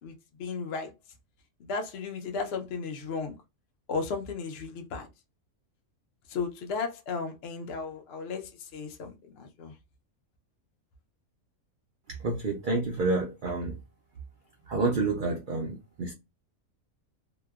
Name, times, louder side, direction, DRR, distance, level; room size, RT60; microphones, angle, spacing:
voice 1, 0.0-0.9 1.6-3.4 3.9-5.1 6.3-9.8, left 4 dB, 55° left, 0.7 m, -35 dB
voice 2, 12.1-13.8 14.7-16.1, right 3 dB, 85° right, 0.4 m, -29 dB
2.9 x 2.0 x 2.3 m
omnidirectional pair, 1.5 m